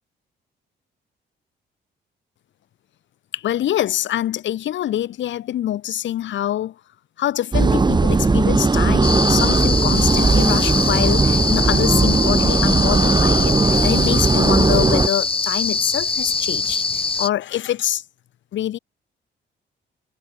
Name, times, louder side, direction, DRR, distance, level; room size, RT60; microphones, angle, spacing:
voice 1, 3.3-6.7 7.2-18.0 18.5-18.8, left 12 dB, 70° left, 1.3 m, -25 dB
sound 1, 7.5-15.1, right 3 dB, 20° right, 1.7 m, -17 dB
sound 2, 9.0-17.3, left 4 dB, 25° left, 2.4 m, -23 dB
cardioid pair, 90°, 20 cm